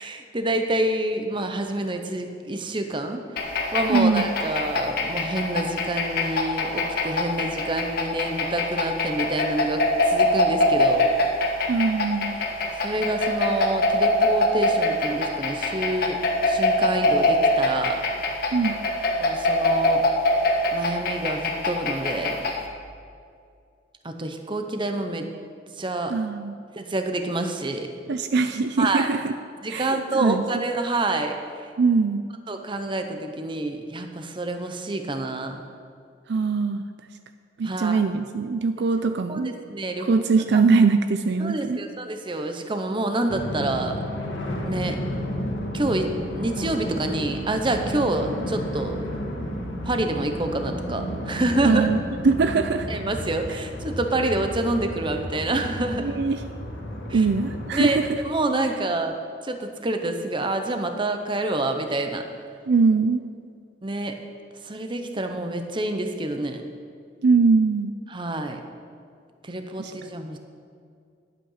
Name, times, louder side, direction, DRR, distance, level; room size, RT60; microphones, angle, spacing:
voice 1, 0.0-3.2 3.7-11.1 12.7-18.0 19.2-20.0 20.7-22.5 24.0-25.3 25.8-26.2 26.7-27.9 28.8-29.1 29.6-31.4 32.5-35.6 37.6-38.0 39.3-40.1 40.5-40.6 41.4-44.0 44.6-45.0 45.7-49.0 49.8-51.9 52.9-56.2 57.1-57.3 57.7-58.0 58.2-59.2 59.4-62.2 63.8-64.2 64.6-66.6 68.1-68.6 69.4-70.4, right 2 dB, 25° right, 6 dB, 0.8 m, -27 dB
sound 1, 3.4-22.7, left 2 dB, 55° left, 1.3 m, -24 dB
voice 2, 3.9-4.3 11.7-12.4 18.5-18.8 26.1-26.6 28.1-29.3 29.7-30.6 31.8-32.2 36.3-36.8 37.6-39.5 40.0-41.8 51.6-52.0 52.2-52.9 56.0-56.4 57.1-58.1 62.7-63.2 67.2-67.9 69.8-69.9, right 4 dB, 60° right, 8 dB, 0.4 m, -22 dB
sound 2, 43.3-58.1, equal, 85° left, 1.8 m, -32 dB
11.5 x 8.5 x 5.6 m, 2.3 s
head